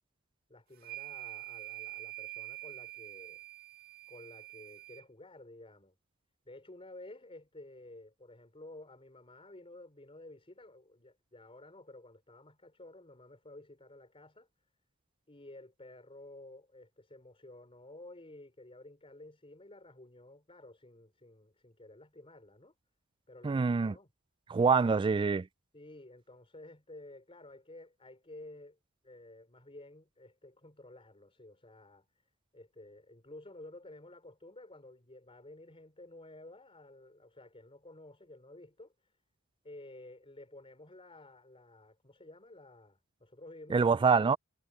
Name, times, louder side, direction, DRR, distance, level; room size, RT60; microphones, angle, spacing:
voice 1, 0.5-3.4 4.1-5.9 6.4-14.5 15.3-22.7 23.3-24.1 25.7-28.8 29.0-32.1 32.5-39.1 39.6-43.9, left 2 dB, 25° left, 4.6 m, -52 dB
sound 1, 0.8-5.0, right 20 dB, 45° right, 2.3 m, -45 dB
voice 2, 23.4-23.9 24.5-25.5 43.7-44.4, right 5 dB, 25° right, 0.3 m, -25 dB
head